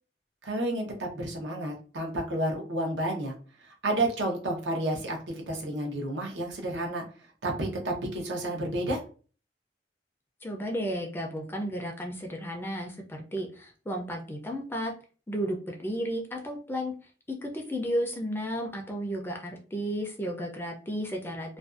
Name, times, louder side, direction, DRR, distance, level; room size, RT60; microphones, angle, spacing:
voice 1, 0.4-3.3 3.8-7.0 7.4-9.0, right 1 dB, 75° right, 1 dB, 0.7 m, -30 dB
voice 2, 10.4-14.9 15.3-16.9 17.3-21.6, equal, 10° left, 1 dB, 0.4 m, -33 dB
2.5 x 2.2 x 2.4 m, 0.38 s
head